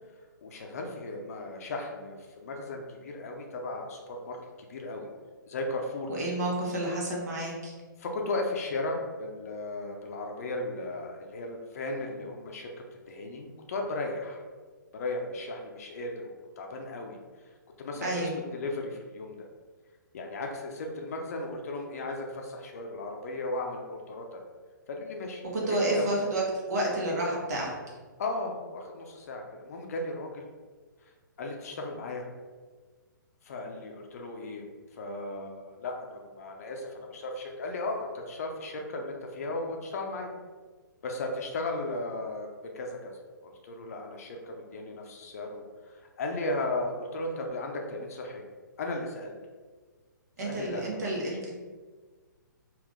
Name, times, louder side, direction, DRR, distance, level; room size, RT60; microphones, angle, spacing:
voice 1, 0.4-4.4 4.7-5.1 5.5-6.1 8.0-12.7 13.1-14.4 14.9-17.2 17.8-19.5 20.1-24.4 24.9-25.4 25.7-26.1 28.2-30.4 31.4-32.3 33.4-34.6 34.9-40.3 41.0-42.5 42.7-43.1 43.4-48.4 48.8-49.3 50.4-51.2, left 2 dB, 50° left, 2 dB, 0.6 m, -36 dB
voice 2, 6.1-7.7 18.0-18.4 25.5-26.4 26.7-27.7 50.4-51.5, right 1 dB, 55° right, -3 dB, 1.2 m, -30 dB
3.5 x 2.5 x 3.7 m, 1.4 s
figure-of-eight pair, 125°, 11 cm